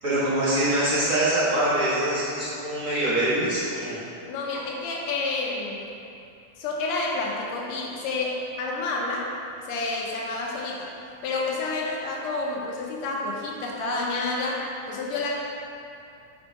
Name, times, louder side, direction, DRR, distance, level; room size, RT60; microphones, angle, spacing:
voice 1, 0.0-4.0, right 1 dB, 40° right, -10 dB, 1.2 m, -24 dB
voice 2, 4.3-5.9 6.6-9.3 9.6-10.9 11.2-15.4, left 3 dB, 70° left, -2 dB, 1.9 m, -29 dB
5.6 x 4.3 x 4.5 m, 2.6 s
omnidirectional pair, 3.4 m